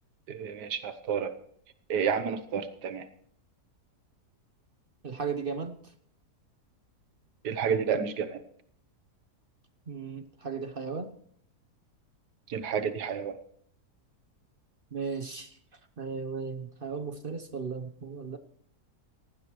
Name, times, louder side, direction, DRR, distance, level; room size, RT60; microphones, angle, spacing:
voice 1, 0.3-1.3 1.9-3.0 7.4-8.4 12.5-13.4, right 7 dB, 85° right, 10 dB, 1.5 m, -30 dB
voice 2, 5.0-5.9 9.9-11.1 14.9-15.6 16.0-18.4, right 5 dB, 40° right, 9 dB, 0.9 m, -36 dB
18.0 x 15.5 x 3.1 m, 0.65 s
omnidirectional pair, 1.7 m